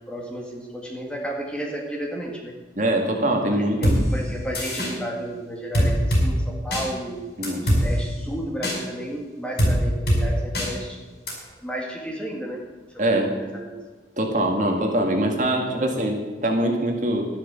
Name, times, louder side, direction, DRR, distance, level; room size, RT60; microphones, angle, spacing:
voice 1, 0.1-2.5 3.5-7.2 7.6-11.0 11.6-12.6 12.9-13.7 15.2-15.9, equal, 5° left, -1 dB, 2.0 m, -33 dB
voice 2, 2.8-4.0 7.4-7.6 13.0-13.3 14.2-17.3, right 1 dB, 45° right, 2 dB, 1.9 m, -23 dB
sound 1, 3.8-4.0 4.5-4.9 5.7-6.2 6.7-6.8 7.4-7.8 8.6-8.8 9.6-9.7 10.1-10.2 10.5-10.7 11.3-11.4, equal, 65° left, 5.4 m, -20 dB
12.5 x 11.0 x 6.9 m, 1.3 s
head